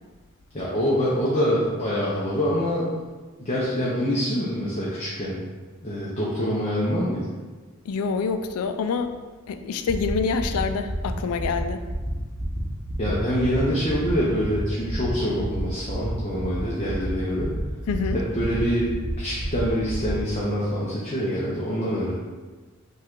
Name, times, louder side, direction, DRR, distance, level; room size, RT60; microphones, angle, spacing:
voice 1, 0.5-2.9 3.4-5.4 5.8-7.2 13.0-17.5 18.1-22.1, equal, 30° left, -7 dB, 0.6 m, -25 dB
voice 2, 7.9-9.1 9.5-11.8 17.9-18.2, left 5 dB, 85° left, 8 dB, 0.4 m, -26 dB
sound 1, 9.9-10.1 10.4-10.6 10.9-11.1 11.4-11.6 11.9-12.1 12.4-12.6 12.9-13.1 13.4-13.6 13.9-14.1 14.4-14.6 14.9-15.1 15.4-15.6 15.9-16.1 16.4-16.6 16.9-17.1 17.4-17.6 17.9-18.1 18.4-18.6 18.9-19.1 19.4-19.6 19.9-20.1, equal, 15° right, 0.8 m, -31 dB
5.4 x 2.4 x 3.7 m, 1.3 s
head